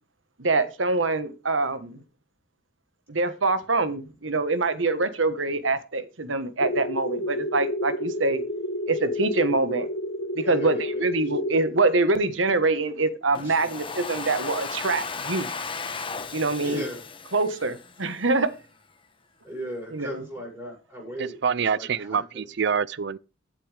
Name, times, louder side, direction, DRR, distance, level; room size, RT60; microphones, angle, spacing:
voice 1, 0.4-2.0 3.1-8.4 8.9-9.9 10.3-15.5 16.3-16.8 17.3-18.5 19.9-20.1, right 3 dB, 90° right, 1.4 m, -25 dB
sound 1, 6.6-11.6, left 1 dB, 85° left, 1.3 m, -30 dB
voice 2, 10.4-11.1 13.4-13.7 16.6-17.0 19.4-22.5, equal, 10° right, 8.0 m, -37 dB
Domestic sounds home sounds, 13.3-18.3, left 4 dB, 25° left, 1.2 m, -35 dB
voice 3, 21.2-23.2, right 6 dB, 65° right, 0.5 m, -26 dB
15.5 x 8.7 x 3.4 m
head